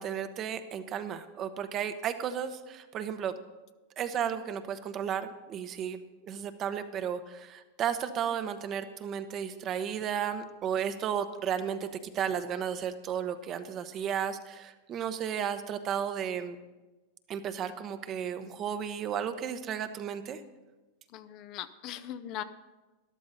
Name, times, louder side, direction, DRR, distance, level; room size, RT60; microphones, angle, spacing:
voice 1, 0.0-3.3 4.0-11.8 12.1-16.6 17.3-20.4, right 8 dB, 35° right, 10 dB, 1.0 m, -33 dB
voice 2, 21.1-22.4, left 11 dB, 45° left, 12 dB, 0.7 m, -39 dB
13.5 x 11.5 x 4.1 m, 1.1 s
hypercardioid pair, 110°, 0 cm